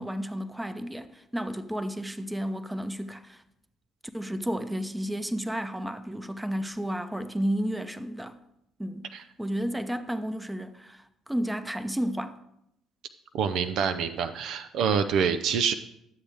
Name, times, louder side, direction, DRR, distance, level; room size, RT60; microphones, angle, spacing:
voice 1, 0.0-3.4 4.1-8.4 8.8-9.1 9.4-12.4, equal, 10° right, 0.7 m, -32 dB
voice 2, 13.3-15.7, right 7 dB, 70° right, 0.5 m, -26 dB
11.5 x 7.2 x 3.4 m
hypercardioid pair, 55°, 0 cm